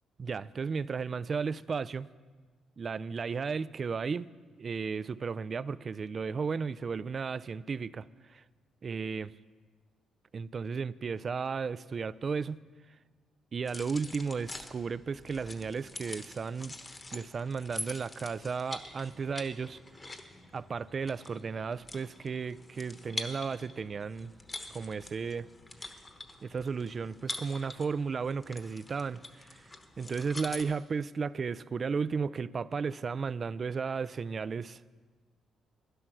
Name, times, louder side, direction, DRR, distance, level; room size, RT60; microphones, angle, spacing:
voice 1, 0.2-2.1 2.8-4.3 4.6-8.1 8.3-8.4 8.8-9.3 10.3-12.6 13.5-16.7 17.1-19.8 20.5-24.3 24.7-25.5 26.4-29.6 30.0-34.8, right 5 dB, 40° right, 0.3 m, -34 dB
sound 1, 13.7-30.6, left 2 dB, 25° left, 1.1 m, -45 dB
11.5 x 11.0 x 6.0 m
cardioid pair, 90°, 0 cm